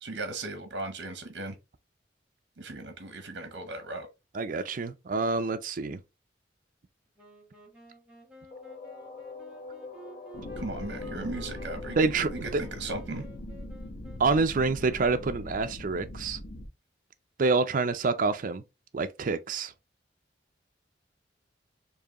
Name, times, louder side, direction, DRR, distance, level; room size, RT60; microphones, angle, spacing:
voice 1, 0.0-1.6 2.6-4.1 10.6-13.3, right 2 dB, 75° right, 0.8 m, -37 dB
voice 2, 4.3-6.0 11.9-12.6 14.2-16.4 17.4-18.6 18.9-19.7, right 4 dB, 50° right, 0.4 m, -27 dB
Wind instrument woodwind instrument, 7.2-15.6, right 2 dB, 5° right, 1.4 m, -52 dB
sound 1, 8.5-14.2, left 4 dB, 60° left, 1.3 m, -45 dB
sound 2, 10.3-16.7, left 1 dB, 80° left, 0.9 m, -41 dB
4.6 x 2.7 x 2.9 m
head